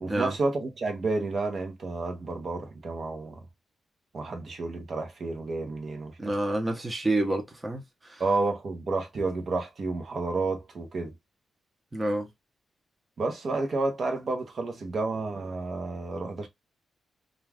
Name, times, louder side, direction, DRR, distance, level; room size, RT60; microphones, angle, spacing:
voice 1, 0.0-3.4 4.1-6.3 8.2-11.1 13.2-16.5, right 3 dB, 55° right, 0.8 m, -30 dB
voice 2, 6.2-8.2 11.9-12.3, right 1 dB, 20° right, 0.8 m, -28 dB
2.4 x 2.4 x 3.3 m
cardioid pair, 90°, 0 cm